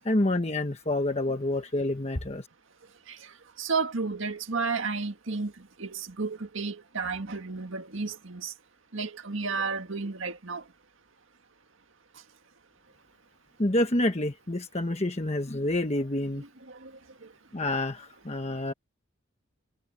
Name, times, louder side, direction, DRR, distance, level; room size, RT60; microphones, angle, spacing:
voice 1, 0.0-2.5 13.6-16.4 17.5-18.7, left 1 dB, 30° left, 1.3 m, -28 dB
voice 2, 3.6-5.5 5.8-8.5 8.9-10.6 16.4-16.5 16.8-16.9, right 4 dB, 65° right, 1.8 m, -32 dB
head